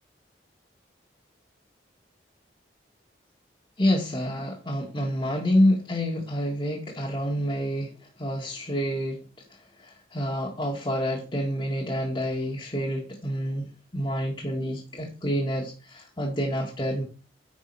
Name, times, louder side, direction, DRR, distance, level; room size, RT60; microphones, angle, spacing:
voice 1, 3.8-7.9 8.2-9.2 9.8-17.0, equal, 25° left, 1.9 m, -28 dB
9.2 x 5.2 x 5.4 m
head